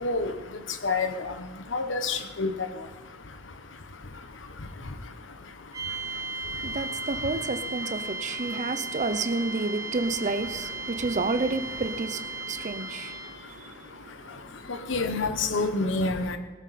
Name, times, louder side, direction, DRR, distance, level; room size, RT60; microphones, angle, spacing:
voice 1, 0.0-0.3 0.8-1.3 1.7-2.5 14.9-16.4, left 3 dB, 70° left, 1.1 m, -27 dB
sound 1, 5.7-13.5, right 3 dB, 20° right, 1.4 m, -36 dB
voice 2, 5.9-14.6, right 3 dB, 40° right, 0.7 m, -31 dB
17.0 x 13.0 x 4.2 m
head